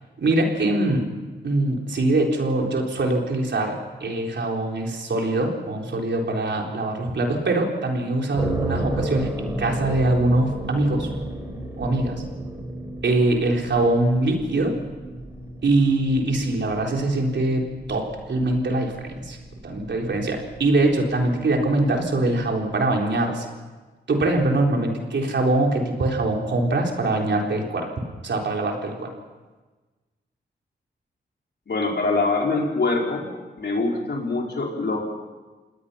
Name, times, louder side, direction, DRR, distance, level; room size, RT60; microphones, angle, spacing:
voice 1, 0.2-1.1 1.4-11.1 11.8-12.2 13.0-14.8 15.6-19.4 19.6-23.5 24.1-27.9 28.2-29.1, right 2 dB, 70° right, 1 dB, 4.0 m, -23 dB
sound 1, 8.3-23.1, right 1 dB, 15° right, 5.0 m, -35 dB
voice 2, 31.7-33.3 33.6-35.0, left 3 dB, 65° left, -1 dB, 5.1 m, -24 dB
27.5 x 19.0 x 5.7 m, 1.3 s
cardioid pair, 55°, 19 cm